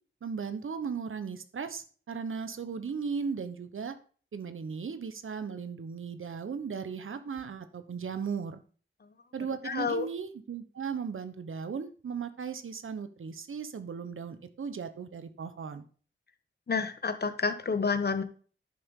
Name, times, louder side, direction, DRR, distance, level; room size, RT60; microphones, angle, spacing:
voice 1, 0.2-3.9 4.3-8.6 9.3-15.8, right 6 dB, 80° right, 11 dB, 1.1 m, -37 dB
voice 2, 9.6-10.1 16.7-18.2, left 4 dB, 50° left, 10 dB, 1.1 m, -29 dB
11.0 x 6.7 x 3.8 m, 0.40 s
wide cardioid pair, 110°, 20 cm